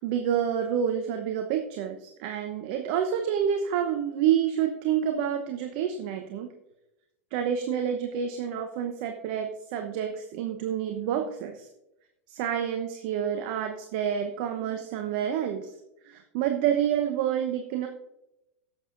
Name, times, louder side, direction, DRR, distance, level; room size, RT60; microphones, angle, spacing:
voice 1, 0.0-6.5 7.3-11.7 12.3-15.7 16.0-17.9, right 9 dB, 55° right, 5 dB, 0.9 m, -28 dB
16.0 x 7.6 x 2.6 m, 0.91 s
figure-of-eight pair, 90°, 7 cm